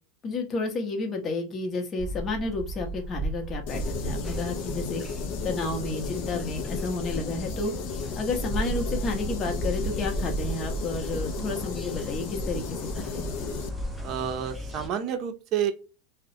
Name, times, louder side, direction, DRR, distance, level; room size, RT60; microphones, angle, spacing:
voice 1, 0.2-5.0 5.4-7.7 8.1-13.3, left 3 dB, 30° left, 2 dB, 0.7 m, -31 dB
sound 1, 2.0-14.1, right 2 dB, 25° right, 0.9 m, -35 dB
sound 2, 3.7-13.7, left 7 dB, 60° left, 0.4 m, -36 dB
sound 3, 3.7-14.9, left 1 dB, ahead, 0.6 m, -39 dB
voice 2, 14.0-15.7, right 9 dB, 45° right, 7 dB, 0.5 m, -29 dB
2.3 x 2.0 x 2.6 m, 0.32 s
hypercardioid pair, 110°, 0 cm